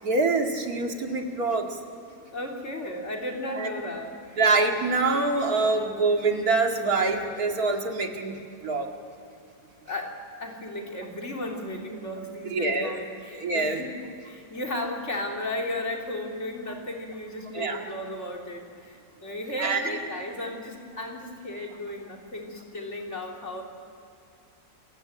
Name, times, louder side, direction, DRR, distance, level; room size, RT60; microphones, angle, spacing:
voice 1, 0.0-1.7 3.5-3.7 4.4-8.3 8.6-8.9 12.4-13.0 13.4-13.8 17.5-17.8 19.6-20.0, right 3 dB, 80° right, 3 dB, 2.6 m, -25 dB
voice 2, 2.3-4.4 9.9-14.0 14.2-23.6, left 1 dB, 50° left, 0 dB, 3.5 m, -35 dB
28.0 x 15.5 x 9.0 m, 2.6 s
omnidirectional pair, 1.6 m